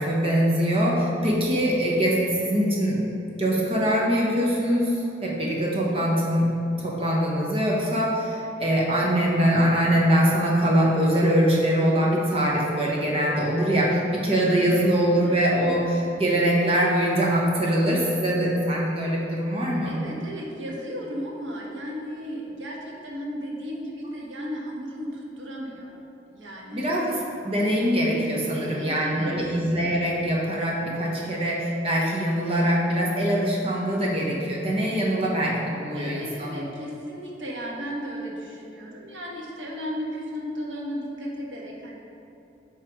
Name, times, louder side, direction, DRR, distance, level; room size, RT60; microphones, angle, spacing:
voice 1, 0.0-3.0 3.4-5.0 5.2-6.5 6.8-20.0 26.7-36.5, equal, 30° right, -3 dB, 1.0 m, -23 dB
voice 2, 19.8-25.9 26.3-26.9 28.5-29.6 35.9-42.0, equal, 90° right, -3 dB, 1.2 m, -35 dB
7.4 x 3.3 x 5.0 m, 2.9 s
head